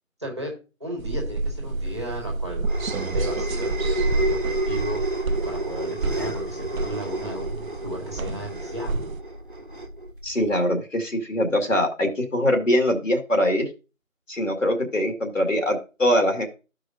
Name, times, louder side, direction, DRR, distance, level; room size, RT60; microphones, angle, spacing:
voice 1, 0.2-0.5 0.8-2.7 3.1-9.0, equal, 20° right, 0 dB, 1.6 m, -35 dB
sound 1, 1.0-9.2, right 3 dB, 80° right, 0.6 m, -29 dB
sound 2, 1.8-10.6, right 1 dB, 40° right, 1.2 m, -31 dB
voice 2, 10.2-13.7 14.3-16.5, left 1 dB, 65° left, 3 dB, 2.0 m, -23 dB
13.5 x 4.9 x 2.6 m, 0.32 s
figure-of-eight pair, 170°, 41 cm